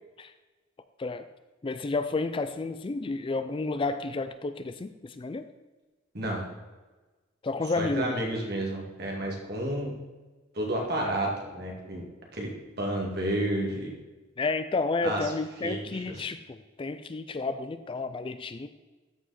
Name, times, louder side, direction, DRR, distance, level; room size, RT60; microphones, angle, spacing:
voice 1, 1.6-5.5 7.4-8.2 14.4-18.7, left 3 dB, 25° left, 11 dB, 0.4 m, -31 dB
voice 2, 7.8-9.9 10.5-12.1 12.3-12.5 12.8-13.9 15.0-15.3 15.6-16.0, right 1 dB, 55° right, -1 dB, 2.3 m, -30 dB
13.0 x 4.9 x 4.2 m, 1.2 s
head